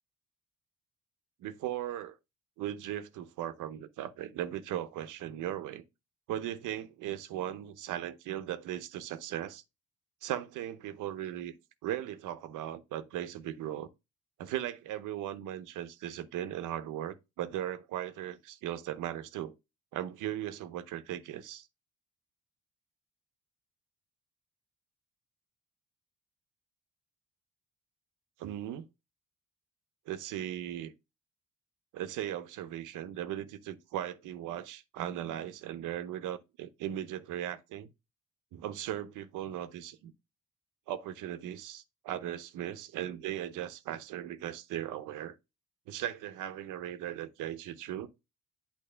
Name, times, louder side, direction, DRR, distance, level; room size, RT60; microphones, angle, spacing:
voice 1, 1.4-2.1 2.6-5.8 6.3-9.6 10.2-11.5 11.8-13.9 14.4-19.5 19.9-21.7 28.4-28.9 30.1-30.9 31.9-37.9 38.5-40.1 40.9-45.4 45.9-48.1, right 11 dB, 90° right, 0.8 m, -38 dB
8.7 x 3.0 x 5.5 m
cardioid pair, 90°, 30 cm